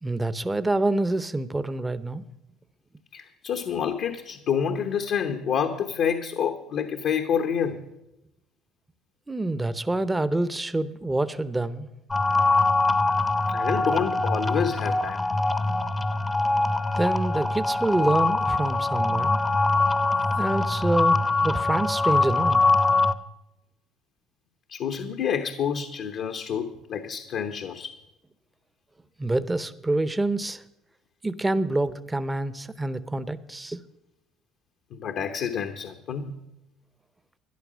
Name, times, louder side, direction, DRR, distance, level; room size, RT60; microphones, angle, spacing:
voice 1, 0.0-2.2 9.3-11.9 17.0-19.4 20.4-22.7 29.2-30.6 31.2-33.8, right 2 dB, 15° right, 14 dB, 0.7 m, -26 dB
voice 2, 3.1-7.8 13.5-15.2 24.7-28.0 34.9-36.3, left 7 dB, 60° left, 5 dB, 1.0 m, -28 dB
sound 1, 12.1-23.1, left 3 dB, 20° left, 0.8 m, -23 dB
12.5 x 10.5 x 6.2 m, 0.88 s
supercardioid pair, 80°, 0 cm